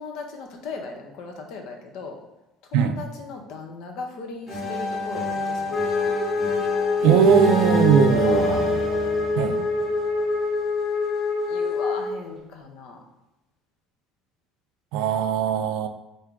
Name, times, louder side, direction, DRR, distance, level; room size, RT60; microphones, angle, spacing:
voice 1, 0.0-2.2 2.7-5.8 6.0-6.1 8.1-8.6 11.5-13.0, left 4 dB, 60° left, 3 dB, 0.7 m, -37 dB
sound 1, 4.5-10.2, right 1 dB, 5° left, 1.4 m, -27 dB
Wind instrument woodwind instrument, 5.7-12.1, left 4 dB, 35° left, 1.5 m, -25 dB
voice 2, 7.0-8.7 9.4-9.6 14.9-15.9, right 8 dB, 80° right, 8 dB, 0.4 m, -20 dB
3.6 x 2.6 x 4.5 m, 0.96 s
cardioid pair, 170°, 0 cm